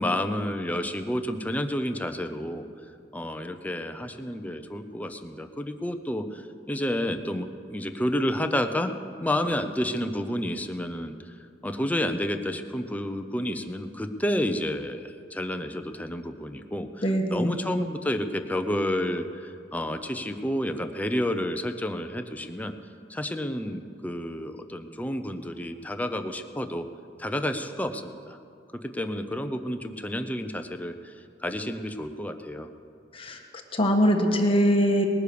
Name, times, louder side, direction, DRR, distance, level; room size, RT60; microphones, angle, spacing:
voice 1, 0.0-2.6 3.1-8.9 9.2-11.3 11.6-22.7 23.1-26.9 27.2-28.4 28.9-31.1 31.4-32.7, left 1 dB, 10° left, 7 dB, 0.7 m, -30 dB
voice 2, 17.0-17.6 33.1-33.4 33.7-35.0, equal, 30° left, 3 dB, 1.4 m, -22 dB
19.5 x 9.8 x 6.9 m, 2.4 s
head